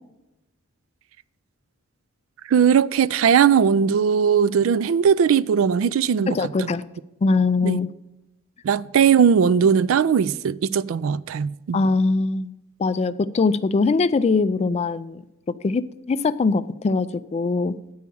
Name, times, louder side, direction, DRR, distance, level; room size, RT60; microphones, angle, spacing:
voice 1, 2.5-6.7 7.6-7.8 8.6-11.8, right 7 dB, 70° right, 0.3 m, -19 dB
voice 2, 6.3-6.8 7.2-7.9 11.7-12.5 12.8-15.2 15.6-17.7, left 3 dB, 30° left, 0.3 m, -22 dB
8.4 x 4.7 x 6.9 m
head